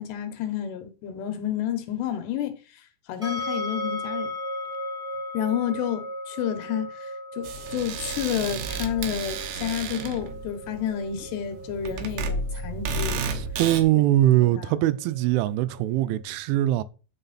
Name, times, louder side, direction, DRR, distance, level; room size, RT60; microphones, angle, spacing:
voice 1, 0.0-2.6 3.1-4.3 5.3-13.2 14.0-14.1 14.6-14.7, left 10 dB, 70° left, 3.1 m, -30 dB
sound 1, 3.2-16.2, left 1 dB, ahead, 2.4 m, -37 dB
sound 2, 7.4-13.8, right 4 dB, 70° right, 2.5 m, -32 dB
voice 2, 13.3-16.8, right 14 dB, 90° right, 3.1 m, -22 dB
9.0 x 6.4 x 4.1 m
omnidirectional pair, 5.3 m